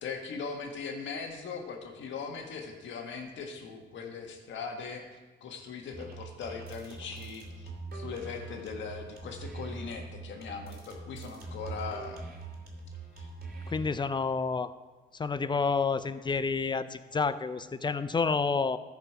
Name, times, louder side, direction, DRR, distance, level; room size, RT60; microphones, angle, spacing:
voice 1, 0.0-5.0 5.4-12.3 13.2-13.3, left 5 dB, 70° left, 3 dB, 1.5 m, -40 dB
sound 1, 5.9-13.9, right 3 dB, 50° right, 2.7 m, -42 dB
voice 2, 13.7-14.7 15.2-18.8, left 4 dB, 25° left, 13 dB, 0.5 m, -29 dB
14.0 x 5.2 x 4.9 m, 1.2 s
cardioid pair, 90°, 20 cm